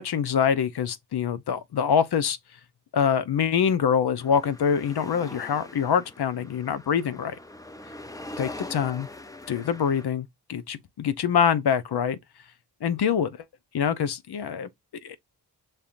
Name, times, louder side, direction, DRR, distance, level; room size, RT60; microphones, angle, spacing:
voice 1, 0.0-2.4 2.9-7.4 8.4-9.1 9.5-12.2 12.8-13.3 13.7-14.7 15.0-15.2, left 7 dB, 65° left, 0.7 m, -25 dB
sound 1, 4.2-10.0, left 2 dB, 10° left, 0.6 m, -42 dB
5.7 x 3.4 x 2.5 m
cardioid pair, 65°, 42 cm